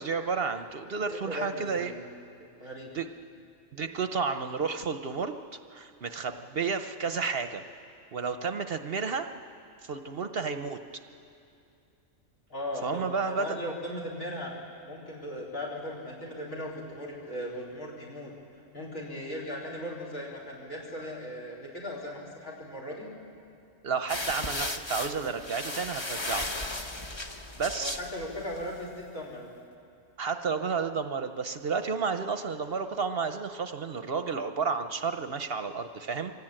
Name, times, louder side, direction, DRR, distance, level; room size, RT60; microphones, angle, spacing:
voice 1, 0.0-1.9 2.9-3.1 3.7-5.3 5.7-7.6 8.1-9.3 9.8-10.8 12.8-13.6 23.8-26.7 27.6-28.0 30.2-36.3, right 5 dB, 55° right, 8 dB, 0.8 m, -31 dB
voice 2, 1.1-2.0 2.6-2.9 12.5-14.5 14.9-18.3 18.7-23.1 27.8-29.5, left 1 dB, 80° left, -1 dB, 4.4 m, -38 dB
sound 1, 24.1-28.8, left 2 dB, 25° left, 0.8 m, -35 dB
24.0 x 16.5 x 8.9 m, 2.6 s
omnidirectional pair, 1.4 m